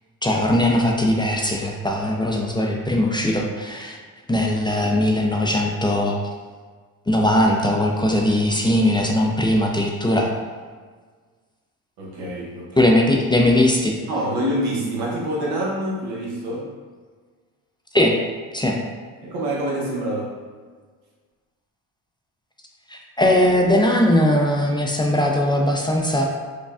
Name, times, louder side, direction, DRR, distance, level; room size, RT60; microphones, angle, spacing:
voice 1, 0.2-4.0 4.3-6.2 7.1-10.3 12.8-13.9 17.9-18.1 18.5-18.8 22.9-26.2, left 1 dB, 10° left, 0 dB, 0.4 m, -19 dB
voice 2, 12.0-12.9 14.1-16.7 19.2-20.3, right 1 dB, 90° right, -4 dB, 0.9 m, -26 dB
4.9 x 2.2 x 2.4 m, 1.5 s
supercardioid pair, 65°, 39 cm